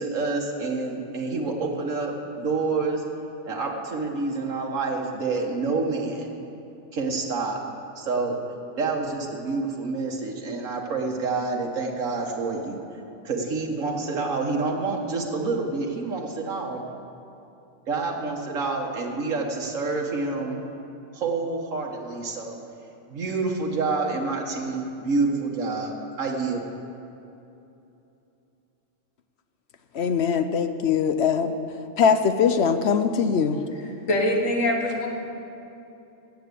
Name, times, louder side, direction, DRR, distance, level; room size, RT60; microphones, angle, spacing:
voice 1, 0.0-3.0 3.4-6.3 6.9-7.6 8.0-8.4 8.8-12.8 13.2-16.8 17.9-20.6 21.1-22.6 23.1-26.7, right 3 dB, 90° right, 1.7 m, -28 dB
voice 2, 29.9-31.6 32.0-33.6, left 6 dB, 60° left, 0.9 m, -22 dB
voice 3, 34.1-35.1, left 1 dB, 90° left, 2.1 m, -23 dB
14.5 x 7.4 x 8.3 m
omnidirectional pair, 1.3 m